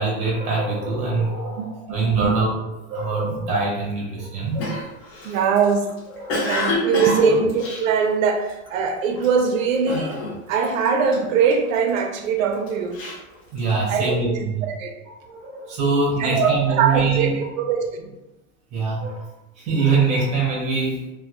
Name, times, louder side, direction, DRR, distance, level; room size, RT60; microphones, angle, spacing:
voice 1, 0.0-2.5 2.9-4.7 6.2-6.5 7.1-7.3 13.5-14.6 15.2-17.3 18.7-19.2 19.6-21.1, right 4 dB, 20° right, -4 dB, 0.6 m, -23 dB
voice 2, 1.6-2.4 3.2-3.4 5.2-5.8 6.5-7.5 7.8-10.1 10.5-13.0 13.9-14.9 16.2-18.1, right 6 dB, 75° right, 4 dB, 0.5 m, -22 dB
Cough, 4.6-8.7 9.2-9.5 9.9-10.6 10.8-12.0 12.5-14.0, left 2 dB, 50° left, 0.7 m, -28 dB
2.2 x 2.1 x 2.7 m, 1.0 s
supercardioid pair, 160°, 41 cm